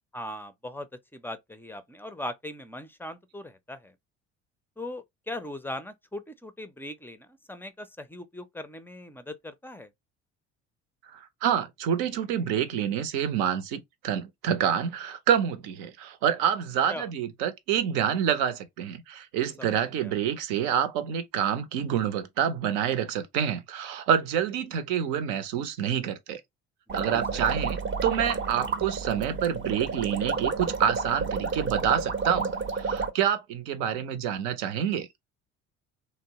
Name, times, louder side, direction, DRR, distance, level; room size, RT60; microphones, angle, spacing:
voice 1, 0.1-3.9 4.8-9.9 16.9-17.1 19.6-20.1 26.9-27.4, left 1 dB, 5° left, 0.4 m, -40 dB
voice 2, 11.1-26.4 26.9-35.1, right 9 dB, 75° right, 0.7 m, -27 dB
sound 1, 26.9-33.1, right 4 dB, 35° right, 0.7 m, -30 dB
2.9 x 2.1 x 2.8 m
hypercardioid pair, 60°, 35 cm